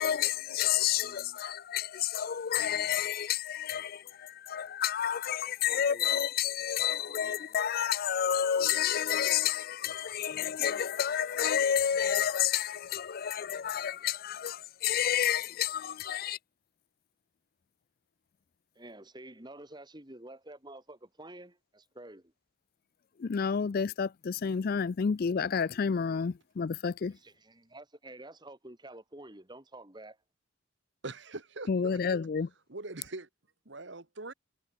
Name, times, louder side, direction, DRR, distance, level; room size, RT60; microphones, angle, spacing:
voice 1, 0.0-16.4 23.2-27.2 31.7-32.5, left 8 dB, 45° left, 0.4 m, -30 dB
voice 2, 1.0-1.4 5.7-6.2 7.2-7.6 18.8-22.3 27.2-30.2, right 1 dB, 20° right, 2.0 m, -50 dB
voice 3, 31.0-32.0 32.7-33.3 33.7-34.3, right 2 dB, 55° right, 1.7 m, -42 dB
head